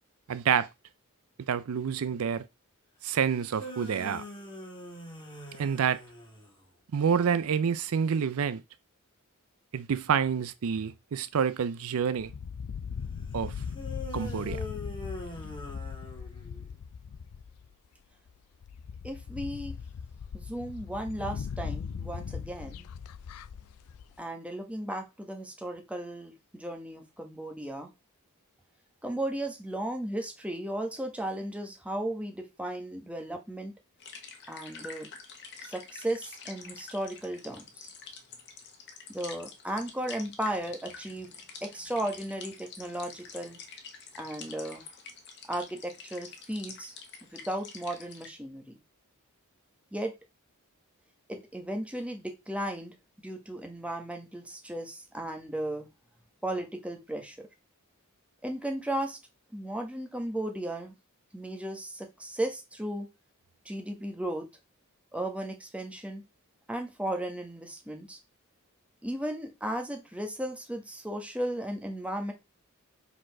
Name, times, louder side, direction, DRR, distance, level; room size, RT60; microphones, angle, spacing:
voice 1, 0.3-0.7 1.5-2.5 3.0-4.2 5.6-6.0 6.9-8.6 9.7-12.3 13.3-13.5 14.1-14.6, right 7 dB, 70° right, 0.4 m, -28 dB
sound 1, 3.3-6.6 13.7-16.7, left 1 dB, 25° left, 2.2 m, -43 dB
sound 2, 12.2-17.7 18.3-18.4 18.6-24.1, left 6 dB, 80° left, 0.4 m, -39 dB
voice 2, 19.0-19.8 20.3-22.8 24.2-27.9 29.0-33.7 34.5-35.1 35.6-37.9 39.1-41.3 41.6-43.6 44.1-44.8 45.5-46.9 47.3-48.8 49.9-50.1 51.3-52.9 53.2-55.9 56.4-57.5 58.4-59.2 59.5-60.9 61.3-63.1 63.6-64.5 65.1-66.2 66.7-68.2 69.0-72.3, right 1 dB, 5° right, 1.3 m, -35 dB
sound 3, 34.0-48.3, left 5 dB, 55° left, 1.5 m, -47 dB
5.0 x 4.2 x 5.8 m
head